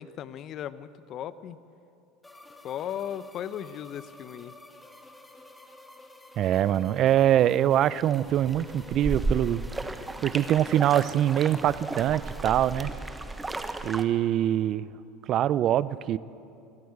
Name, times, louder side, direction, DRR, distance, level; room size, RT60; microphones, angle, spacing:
voice 1, 0.0-1.6 2.6-4.5, left 10 dB, 50° left, 15 dB, 0.9 m, -36 dB
sound 1, 2.2-12.9, left 2 dB, 10° left, 2.6 m, -51 dB
voice 2, 6.4-9.6 10.2-12.9 13.8-14.9 15.3-16.2, right 11 dB, 50° right, 18 dB, 0.6 m, -24 dB
sound 2, 8.0-14.0, right 2 dB, 15° right, 1.3 m, -34 dB
26.5 x 14.0 x 8.1 m, 2.7 s
hypercardioid pair, 75°, 0 cm